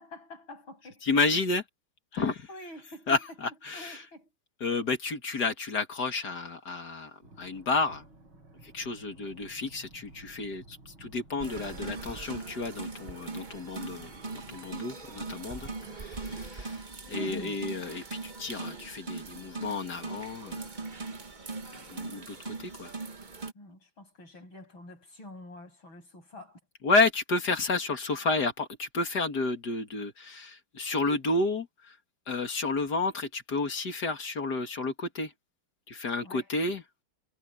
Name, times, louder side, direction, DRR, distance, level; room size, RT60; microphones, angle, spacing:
voice 1, 0.1-1.1 2.5-3.2 3.7-4.3 15.6-16.0 16.7-16.8 17.1-17.6 23.5-26.6 36.2-36.5, left 1 dB, 65° left, 9.0 m, -46 dB
voice 2, 1.0-1.6 2.1-2.5 3.1-4.0 4.6-8.0 8.6-20.6 21.7-22.9 26.8-32.0 32.3-35.3 35.9-36.8, left 3 dB, 50° left, 2.8 m, -31 dB
sound 1, 7.2-14.8, right 2 dB, 70° right, 7.8 m, -54 dB
sound 2, 11.4-23.5, right 3 dB, 25° right, 1.3 m, -40 dB
omnidirectional pair, 2.3 m